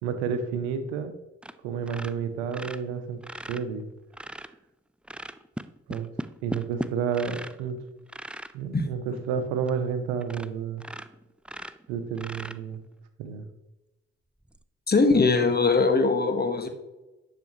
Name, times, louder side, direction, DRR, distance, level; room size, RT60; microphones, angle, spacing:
voice 1, 0.0-1.1 1.6-3.2 3.5-3.9 5.9-6.1 6.4-7.8 8.5-10.8 11.9-12.8 13.2-13.5, right 6 dB, 85° right, 10 dB, 0.8 m, -30 dB
sound 1, 1.4-1.6 1.8-4.5 5.0-7.6 8.1-8.5 9.2-9.3 9.7-9.8 10.2-10.5 10.8-12.9 14.4-14.6, right 1 dB, 5° right, 0.4 m, -38 dB
voice 2, 14.9-16.7, left 3 dB, 30° left, 6 dB, 1.5 m, -21 dB
10.0 x 6.6 x 3.1 m, 1.0 s
hypercardioid pair, 45°, 32 cm